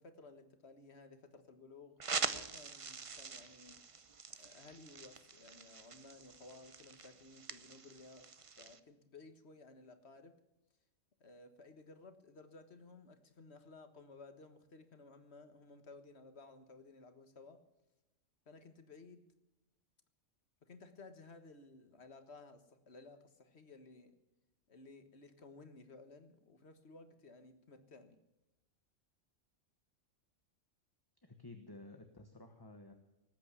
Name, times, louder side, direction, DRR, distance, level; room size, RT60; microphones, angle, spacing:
voice 1, 0.0-3.8 4.4-8.3 8.6-10.4 11.2-17.6 18.4-19.2 20.6-24.2 24.7-28.2, left 3 dB, 60° left, 8 dB, 1.8 m, -57 dB
sound 1, 2.0-8.8, right 5 dB, 35° right, 0.7 m, -44 dB
voice 2, 31.2-32.9, left 2 dB, 20° left, 6 dB, 1.2 m, -53 dB
19.0 x 8.9 x 8.3 m, 0.99 s
omnidirectional pair, 1.3 m